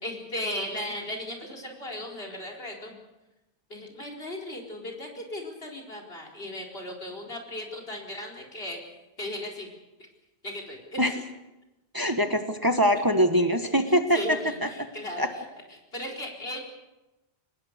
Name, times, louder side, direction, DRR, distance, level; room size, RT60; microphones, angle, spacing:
voice 1, 0.0-2.9 3.7-8.8 9.2-9.7 10.4-11.2 14.1-15.4 15.7-16.6, left 1 dB, 70° left, 3 dB, 4.6 m, -36 dB
voice 2, 11.9-14.9 15.2-15.3, equal, 20° right, 6 dB, 1.4 m, -23 dB
25.0 x 20.0 x 6.7 m, 1.0 s
omnidirectional pair, 1.1 m